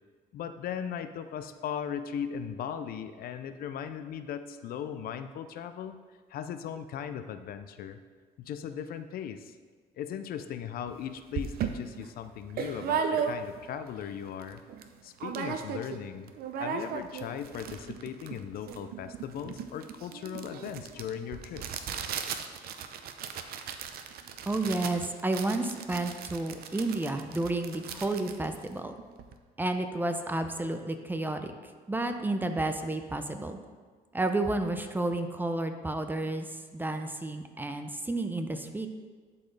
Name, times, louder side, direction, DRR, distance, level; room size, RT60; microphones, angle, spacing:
voice 1, 0.3-6.0 6.3-8.0 8.4-9.6 10.0-14.6 15.0-16.3 16.6-22.0, left 8 dB, 60° left, 10 dB, 0.5 m, -38 dB
sound 1, 10.9-11.0 11.3-13.7 14.1-14.2 14.4-14.9 15.2-16.0 16.3-29.3, right 7 dB, 65° right, 0.6 m, -36 dB
voice 2, 24.5-28.9 29.6-31.5 31.9-33.6 34.1-36.5 36.7-38.9, right 2 dB, 10° right, 7 dB, 0.5 m, -31 dB
11.5 x 4.3 x 3.3 m, 1.5 s
cardioid pair, 110°, 17 cm